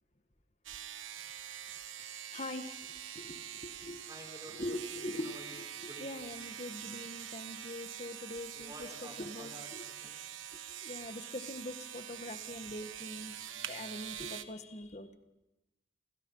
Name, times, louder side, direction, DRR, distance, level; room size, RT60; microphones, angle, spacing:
sound 1, 0.6-14.4, right 10 dB, 85° right, 1.3 m, -45 dB
voice 1, 2.0-2.9 3.1-4.1 4.6-8.7 9.2-9.8 10.8-13.4 13.7-15.2, left 1 dB, 35° left, 7 dB, 1.8 m, -43 dB
voice 2, 4.1-6.4 8.5-10.2, equal, 20° right, 2 dB, 5.0 m, -51 dB
29.5 x 27.5 x 5.7 m, 0.99 s
head